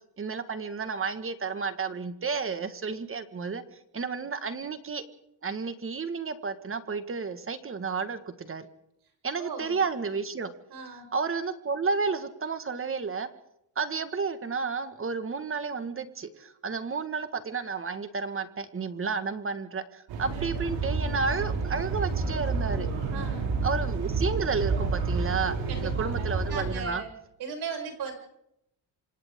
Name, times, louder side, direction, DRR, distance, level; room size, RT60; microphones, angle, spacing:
voice 1, 0.2-3.6 3.9-5.0 5.4-8.7 9.2-10.5 11.1-13.3 13.7-22.9 23.6-27.0, right 5 dB, 30° right, 10 dB, 1.7 m, -31 dB
voice 2, 9.4-9.8 10.7-11.1 23.1-23.5 25.7-27.1 27.4-28.1, right 5 dB, 60° right, 2 dB, 7.3 m, -37 dB
sound 1, 20.1-26.7, right 4 dB, 85° right, 6.2 m, -29 dB
28.5 x 25.5 x 3.7 m, 0.79 s
cardioid pair, 125°, 43 cm